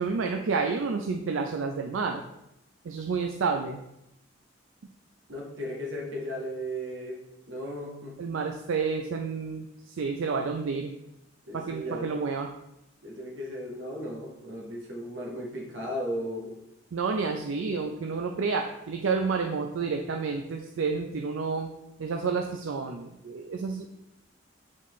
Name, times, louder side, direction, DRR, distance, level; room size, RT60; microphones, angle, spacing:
voice 1, 0.0-2.3 2.8-3.8 8.2-11.0 11.5-12.5 16.9-21.7 22.0-23.9, right 4 dB, 90° right, 4 dB, 0.4 m, -30 dB
voice 2, 5.3-8.2 11.5-12.1 13.0-16.6, equal, 70° right, -1 dB, 1.4 m, -36 dB
7.4 x 4.2 x 3.1 m, 0.86 s
head